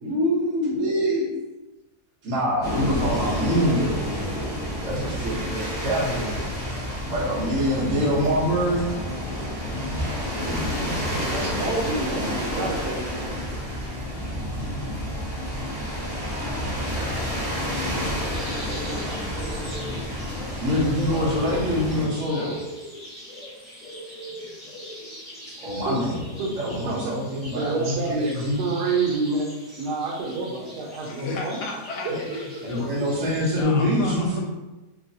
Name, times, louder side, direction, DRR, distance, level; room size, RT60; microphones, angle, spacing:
voice 1, 0.0-1.2 2.2-4.0 4.8-6.4 7.0-9.0 10.3-11.3 20.6-22.5 25.5-26.2 26.6-28.6 32.1-32.2 32.6-34.4, equal, 55° right, -5 dB, 1.1 m, -25 dB
sound 1, 2.6-22.1, equal, 25° right, 0.5 m, -29 dB
voice 2, 11.3-13.5 25.9-26.0 26.4-26.5 26.9-27.1 27.5-29.5 29.7-31.6 32.0-32.1, right 3 dB, 85° right, 0 dB, 1.2 m, -28 dB
sound 2, 18.2-33.6, equal, 25° left, 1.6 m, -41 dB
voice 3, 21.1-22.7 25.9-26.5 31.0-32.9 33.5-34.4, left 3 dB, 80° left, 1 dB, 1.1 m, -35 dB
3.0 x 2.7 x 2.6 m, 1.1 s
omnidirectional pair, 1.8 m